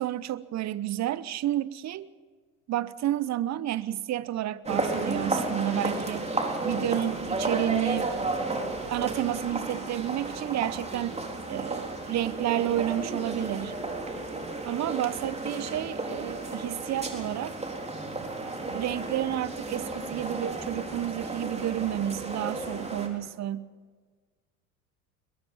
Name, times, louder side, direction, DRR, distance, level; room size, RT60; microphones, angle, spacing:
voice 1, 0.0-2.1 2.7-6.3 6.6-8.1 8.9-11.2 11.5-13.7 14.6-17.6 18.7-23.7, right 13 dB, 35° right, 0.9 m, -30 dB
sound 1, 4.6-23.1, right 2 dB, 15° right, 3.8 m, -33 dB
22.0 x 22.0 x 5.5 m
hypercardioid pair, 70°, 47 cm